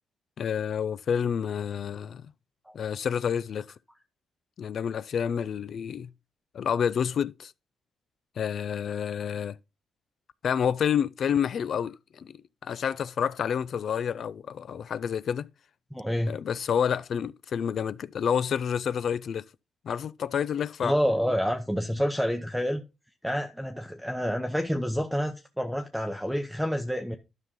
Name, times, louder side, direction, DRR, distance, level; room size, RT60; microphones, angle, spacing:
voice 1, 0.4-2.3 2.7-3.7 4.6-6.1 6.5-7.5 8.4-9.6 10.4-15.5 16.3-19.5 19.8-20.9, left 8 dB, 60° left, 0.4 m, -29 dB
voice 2, 15.9-16.4 20.8-22.8 23.2-27.2, equal, ahead, 0.8 m, -28 dB
12.0 x 5.7 x 3.7 m
cardioid pair, 100°, 0 cm